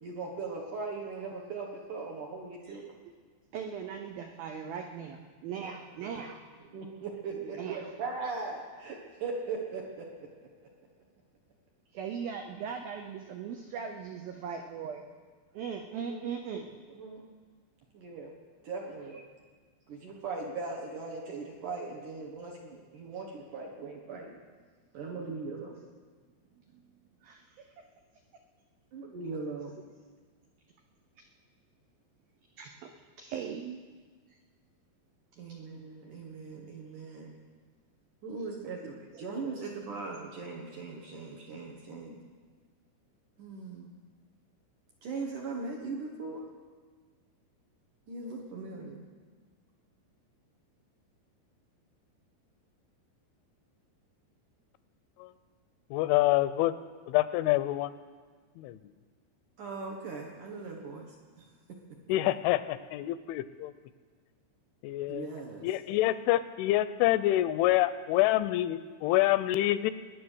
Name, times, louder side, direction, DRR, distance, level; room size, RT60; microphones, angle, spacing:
voice 1, 0.0-2.9 5.5-5.7 6.7-10.5 16.1-16.2 16.9-17.3 17.9-18.3 18.6-19.2 19.9-24.4 24.9-25.7 28.9-29.7 35.4-37.3 38.2-42.2 43.4-43.9 45.0-46.5 48.1-49.1 59.6-61.4 65.1-65.7, right 4 dB, 60° right, 0 dB, 2.2 m, -39 dB
voice 2, 3.5-6.4 7.6-7.8 11.9-15.0 15.5-16.7 26.7-26.8 27.2-27.7 31.2-31.3 32.6-32.9 33.2-33.8 39.1-39.2, right 7 dB, 85° right, 4 dB, 2.0 m, -39 dB
voice 3, 55.9-56.7 57.1-57.9 58.6-58.8 62.1-63.7 64.8-65.3 65.6-69.9, left 15 dB, 85° left, 14 dB, 3.0 m, -27 dB
22.0 x 9.9 x 6.4 m, 1.5 s
omnidirectional pair, 5.5 m